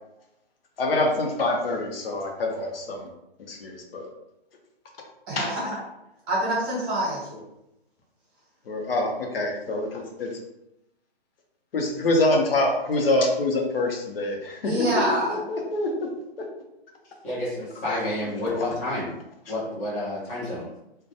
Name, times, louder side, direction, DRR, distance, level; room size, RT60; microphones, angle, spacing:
voice 1, 0.8-3.1 3.5-4.1 5.3-5.5 8.7-10.4 11.7-16.1 16.4-16.5 17.8-18.1, left 2 dB, 60° left, 2 dB, 0.7 m, -26 dB
voice 2, 5.3-5.6 6.3-7.3 14.6-15.4, right 1 dB, 25° right, -5 dB, 0.9 m, -25 dB
voice 3, 17.2-19.1 19.5-20.7, left 1 dB, 15° left, -6 dB, 0.6 m, -29 dB
2.3 x 2.2 x 2.7 m, 0.86 s
hypercardioid pair, 150°, 32 cm